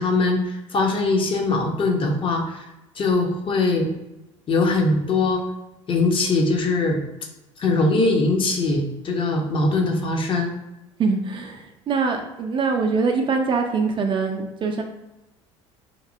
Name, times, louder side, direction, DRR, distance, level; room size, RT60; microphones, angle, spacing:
voice 1, 0.0-2.6 3.0-3.9 4.5-5.4 5.9-7.0 7.6-10.5, left 3 dB, 30° left, 2 dB, 0.6 m, -21 dB
voice 2, 11.0-14.8, right 4 dB, 30° right, 4 dB, 0.4 m, -23 dB
2.9 x 2.6 x 2.5 m, 0.97 s
figure-of-eight pair, 60°, 16 cm